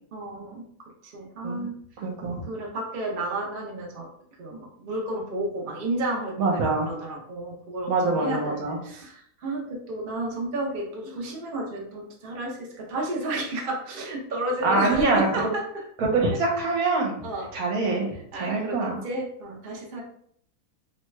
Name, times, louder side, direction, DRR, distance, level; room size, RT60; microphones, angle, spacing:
voice 1, 0.1-0.6 1.0-1.8 2.5-4.1 4.4-15.6 17.2-17.5 18.3-20.0, right 1 dB, 50° right, -2 dB, 0.7 m, -32 dB
voice 2, 2.0-2.4 6.4-6.9 7.9-8.8 14.6-15.5 16.0-17.2 17.5-19.0, right 3 dB, 70° right, 0 dB, 1.2 m, -24 dB
3.2 x 2.2 x 3.1 m, 0.67 s
omnidirectional pair, 1.6 m